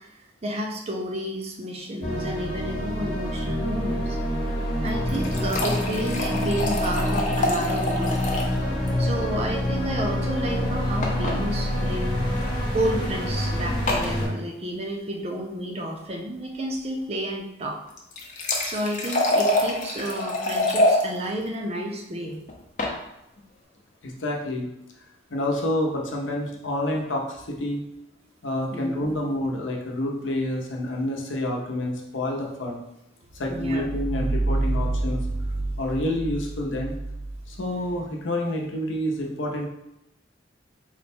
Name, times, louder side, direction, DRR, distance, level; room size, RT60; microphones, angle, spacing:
voice 1, 0.0-4.2 4.8-8.2 9.0-12.3 12.7-17.8 18.7-22.4 28.7-29.2 33.5-33.8, right 1 dB, 30° right, 1 dB, 0.5 m, -31 dB
sound 1, 2.0-14.3, equal, 25° left, 0.9 m, -27 dB
sound 2, 4.9-8.6 8.9-9.0 9.2-9.3 11.0-11.4 12.3-12.5 13.9-14.1 17.9-21.0 22.5-23.0, left 1 dB, 40° left, 0.6 m, -26 dB
voice 2, 24.0-24.7 25.3-27.8 28.4-32.8 33.3-35.2 35.8-36.9 37.5-39.7, left 1 dB, 75° left, 0 dB, 0.7 m, -28 dB
sound 3, 33.3-38.0, right 2 dB, 75° right, 0.7 m, -28 dB
4.2 x 2.1 x 4.3 m, 0.86 s
head